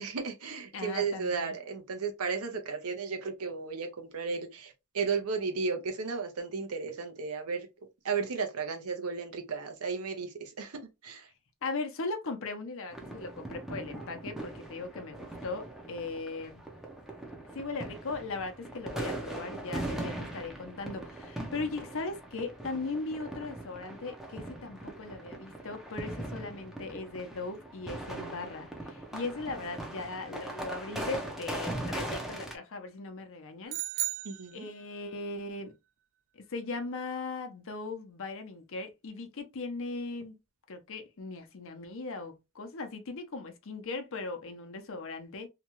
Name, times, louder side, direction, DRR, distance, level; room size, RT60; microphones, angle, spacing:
voice 1, 0.0-7.7 8.0-10.3 10.6-11.2 34.2-34.7, right 5 dB, 75° right, 0.8 m, -34 dB
voice 2, 0.7-1.5 11.6-16.6 17.5-33.8 34.5-35.7 36.3-40.4 40.7-45.5, left 3 dB, 65° left, 0.7 m, -38 dB
sound 1, 12.9-32.6, right 1 dB, ahead, 0.5 m, -40 dB
sound 2, 33.7-35.1, right 16 dB, 60° right, 0.4 m, -35 dB
2.8 x 2.3 x 2.9 m
head